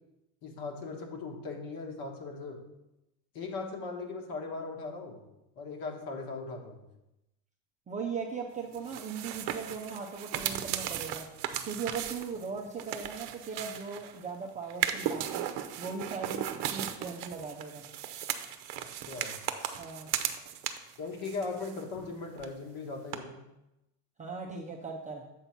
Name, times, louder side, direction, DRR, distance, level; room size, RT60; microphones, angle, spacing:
voice 1, 0.4-2.6 3.3-5.2 5.5-6.8 18.9-19.4 21.0-23.4, left 3 dB, 45° left, 3 dB, 1.6 m, -39 dB
voice 2, 7.9-11.3 11.7-15.4 15.8-17.8 19.8-20.1 24.2-25.3, right 5 dB, 15° right, -1 dB, 0.4 m, -38 dB
sound 1, 8.7-14.2 14.7-21.0 21.2-22.1 22.4-22.5 23.1-23.2, right 11 dB, 50° right, 0.8 m, -36 dB
8.0 x 4.1 x 5.9 m, 0.93 s
cardioid pair, 145°, 49 cm